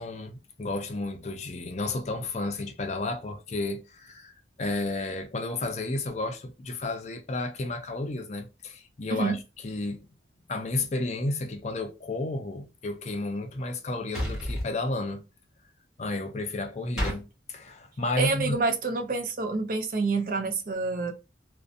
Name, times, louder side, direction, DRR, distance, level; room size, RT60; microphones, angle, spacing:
voice 1, 0.0-10.1 10.5-15.2 16.0-17.2 17.5-18.6, left 2 dB, 35° left, 0.4 m, -32 dB
sound 1, 14.1-14.7 17.0-17.2, equal, 5° right, 1.2 m, -29 dB
voice 2, 18.2-21.1, right 3 dB, 50° right, 0.5 m, -27 dB
2.6 x 2.1 x 2.4 m
head